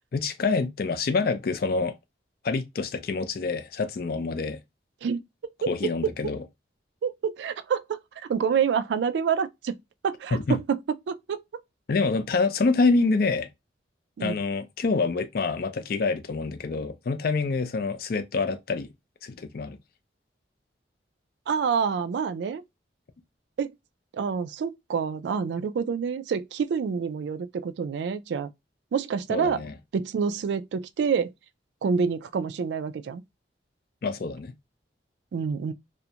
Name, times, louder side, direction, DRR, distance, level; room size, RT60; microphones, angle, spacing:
voice 1, 0.1-1.9 2.4-4.6 5.7-6.4 10.3-10.6 11.9-13.5 14.2-18.9 19.2-19.8 29.3-29.7 34.0-34.5, left 4 dB, 55° left, 0.4 m, -26 dB
voice 2, 5.6-6.1 7.0-8.0 8.3-9.8 10.0-10.8 11.1-11.6 14.2-14.4 21.5-22.6 23.6-23.7 24.1-28.5 28.9-29.6 29.9-31.3 31.8-33.2 35.3-35.7, right 6 dB, 75° right, 0.3 m, -27 dB
2.4 x 2.1 x 2.7 m
head